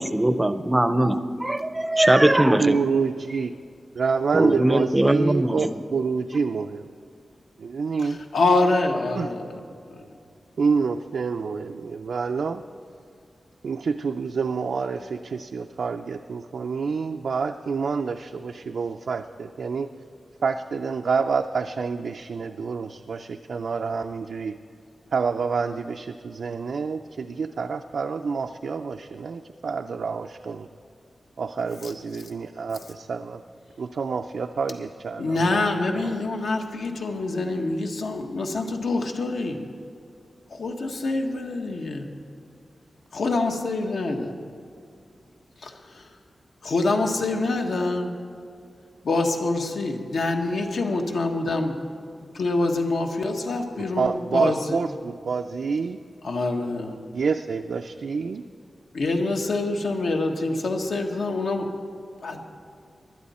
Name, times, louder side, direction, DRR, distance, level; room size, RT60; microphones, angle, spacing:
voice 1, 0.0-2.8 4.3-5.7, right 1 dB, 15° right, 11 dB, 0.5 m, -20 dB
voice 2, 2.6-3.5 4.0-6.9 7.6-8.2 9.2-9.3 10.6-12.6 13.6-19.9 20.4-24.5 25.1-30.7 31.4-33.4 33.8-35.7 36.0-36.1 54.0-56.0 57.1-58.4, right 5 dB, 75° right, 5 dB, 0.4 m, -27 dB
voice 3, 8.0-9.6 9.9-10.0 31.8-31.9 35.2-39.6 40.5-42.1 43.1-44.3 45.6-46.0 46.6-48.1 49.0-51.8 52.2-54.8 56.2-57.0 58.9-61.7 62.2-62.4, left 2 dB, 80° left, 2 dB, 1.3 m, -26 dB
20.0 x 11.5 x 4.2 m, 2.3 s
wide cardioid pair, 175°, 0 cm